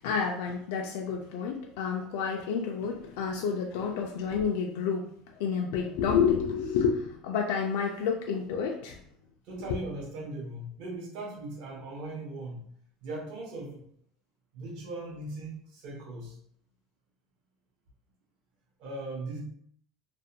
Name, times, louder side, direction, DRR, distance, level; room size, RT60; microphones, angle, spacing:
voice 1, 0.0-9.0 9.7-9.8, left 6 dB, 80° left, 1 dB, 0.3 m, -29 dB
voice 2, 9.4-12.7 13.0-13.8 14.5-16.4 18.8-19.4, right 2 dB, 60° right, -3 dB, 0.7 m, -39 dB
2.4 x 2.1 x 2.7 m, 0.64 s
cardioid pair, 160°, 0 cm